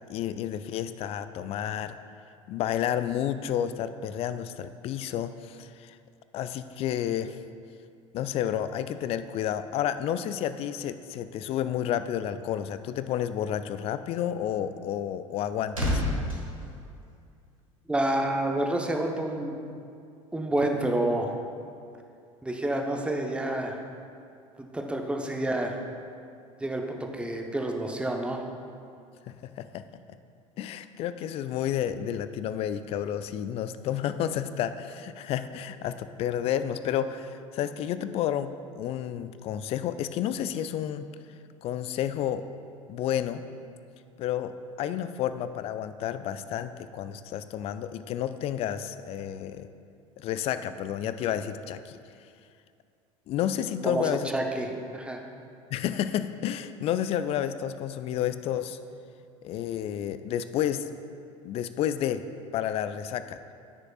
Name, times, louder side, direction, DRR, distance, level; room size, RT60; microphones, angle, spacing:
voice 1, 0.1-2.0 2.5-6.0 6.3-7.4 8.1-16.0 29.6-29.8 30.6-41.1 41.6-42.4 42.9-43.4 44.2-44.5 44.8-49.7 50.2-52.0 53.3-54.3 55.7-58.8 59.4-60.9 61.4-62.2 62.5-63.4, left 10 dB, 35° left, 12 dB, 0.4 m, -30 dB
sound 1, 15.2-17.7 18.0-18.2, left 1 dB, 85° right, 1.4 m, -32 dB
voice 2, 17.9-19.6 20.3-21.3 22.4-23.8 24.7-25.7 26.6-28.4 53.8-55.2, right 1 dB, 5° right, 2 dB, 0.8 m, -29 dB
13.5 x 6.5 x 2.4 m, 2.4 s
figure-of-eight pair, 70°, 17 cm